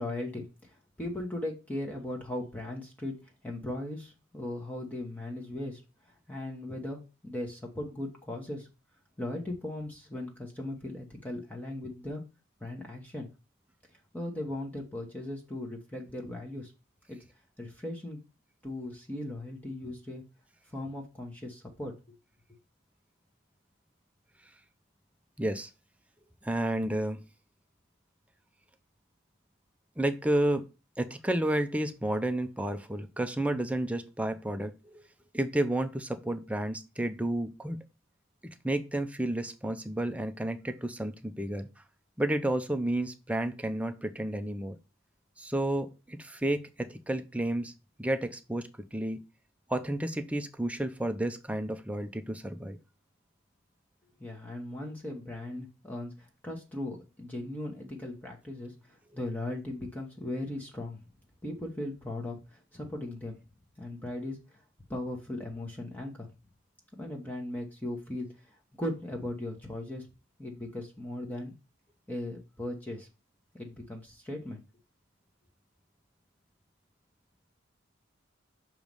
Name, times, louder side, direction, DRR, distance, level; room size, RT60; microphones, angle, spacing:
voice 1, 0.0-8.7 9.2-12.3 12.6-13.3 14.1-16.7 17.1-17.2 17.6-18.3 18.6-20.2 20.7-22.1 54.2-61.0 61.4-63.4 63.8-64.6 64.9-66.3 67.0-70.1 70.4-71.5 72.1-73.1 73.5-74.6, left 1 dB, 10° left, 0 dB, 1.1 m, -38 dB
voice 2, 25.4-25.7 26.4-27.2 30.0-30.7 31.0-35.0 35.3-37.8 38.4-41.7 42.2-44.8 45.4-47.7 48.0-49.2 49.7-52.8, right 1 dB, 5° right, 7 dB, 0.6 m, -31 dB
6.6 x 3.1 x 5.3 m, 0.29 s
head